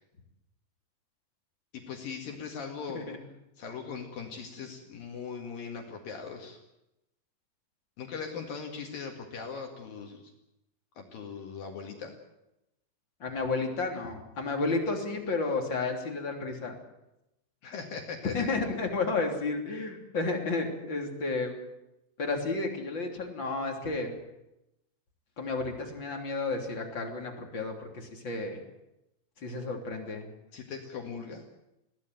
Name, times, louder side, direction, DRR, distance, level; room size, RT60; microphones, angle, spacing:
voice 1, 1.7-3.1 3.6-6.6 8.0-10.3 11.0-12.2 17.6-18.5 30.5-31.5, left 5 dB, 60° left, 3 dB, 3.5 m, -40 dB
voice 2, 13.2-16.8 18.3-21.6 22.2-24.1 25.4-28.6 29.4-30.3, left 3 dB, 30° left, 2 dB, 3.4 m, -32 dB
21.5 x 17.0 x 9.3 m, 0.88 s
omnidirectional pair, 4.9 m